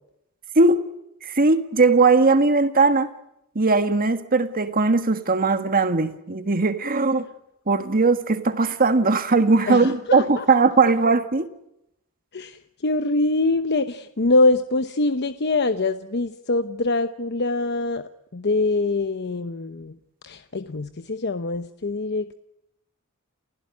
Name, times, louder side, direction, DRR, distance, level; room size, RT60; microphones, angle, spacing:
voice 1, 0.5-0.9 1.2-3.1 3.5-7.3 7.7-11.5, right 3 dB, 40° right, 1.6 m, -19 dB
voice 2, 9.7-10.4 12.3-20.0 20.2-22.4, left 2 dB, 50° left, 0.9 m, -24 dB
30.0 x 16.0 x 9.7 m
head